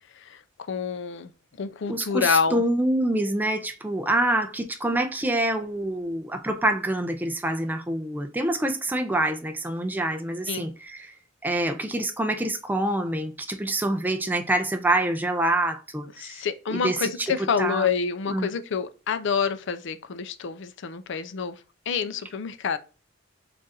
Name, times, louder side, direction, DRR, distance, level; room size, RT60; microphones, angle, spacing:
voice 1, 0.7-1.3 1.6-2.6 10.5-10.7 16.2-21.6 21.9-22.8, left 6 dB, 65° left, 0.5 m, -27 dB
voice 2, 1.9-11.1 11.4-16.4 16.7-17.1 17.6-17.9 18.3-18.5, right 1 dB, 10° right, 0.4 m, -26 dB
3.8 x 2.5 x 4.0 m
head